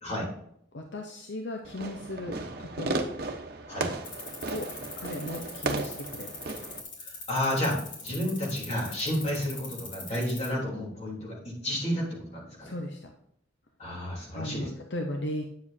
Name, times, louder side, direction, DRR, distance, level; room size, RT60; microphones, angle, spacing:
voice 1, 0.7-3.0 4.5-4.7 5.0-6.3 12.6-13.1 14.3-15.4, left 1 dB, 70° left, 3 dB, 0.8 m, -36 dB
Fireworks, 1.6-6.8, right 2 dB, 55° right, 0.9 m, -35 dB
sound 1, 4.0-10.5, left 4 dB, 85° left, 3.5 m, -41 dB
voice 2, 7.0-7.7 8.0-12.7 13.8-14.7, left 1 dB, 35° left, -4 dB, 3.3 m, -31 dB
9.3 x 7.3 x 2.7 m, 0.72 s
head